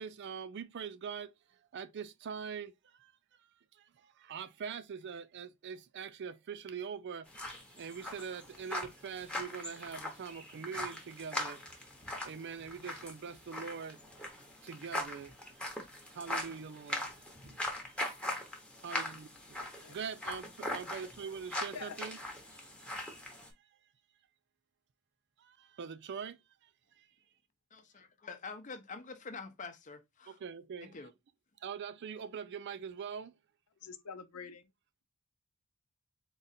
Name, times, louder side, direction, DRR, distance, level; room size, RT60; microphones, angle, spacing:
voice 1, 0.0-1.3 1.7-3.1 3.7-7.3 7.8-11.6 12.2-17.1 17.4-18.0 18.8-22.2 22.5-23.4 25.4-26.7 27.0-27.1 30.3-31.1 31.6-33.3, right 6 dB, 50° right, 0.4 m, -44 dB
sound 1, 7.3-23.5, left 1 dB, 5° left, 0.8 m, -41 dB
voice 2, 27.7-30.4 30.8-31.1, left 4 dB, 35° left, 0.6 m, -46 dB
voice 3, 33.8-34.6, left 6 dB, 90° left, 0.6 m, -45 dB
3.9 x 2.4 x 4.1 m
head